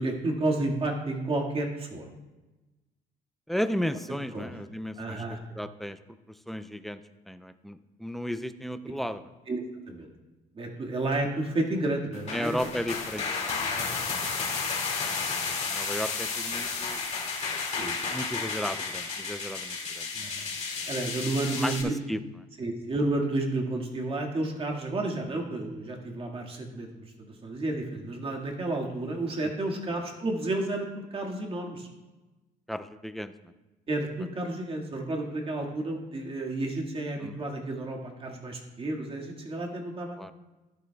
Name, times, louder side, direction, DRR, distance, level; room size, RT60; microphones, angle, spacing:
voice 1, 0.0-2.1 4.3-4.5 5.0-5.4 9.5-10.1 10.5-12.6 13.7-13.9 17.8-18.2 20.1-20.5 20.9-22.0 22.6-31.9 33.9-40.2, right 2 dB, 30° right, 0 dB, 1.9 m, -31 dB
voice 2, 3.5-6.0 6.5-7.0 7.3-9.2 12.3-13.5 15.0-17.0 18.1-20.1 21.5-22.2 32.7-33.3 37.2-37.4 40.2-40.3, equal, ahead, 10 dB, 0.5 m, -34 dB
sound 1, 12.1-21.8, left 5 dB, 40° left, 2.4 m, -32 dB
11.5 x 11.5 x 2.3 m, 1.1 s
cardioid pair, 110°, 17 cm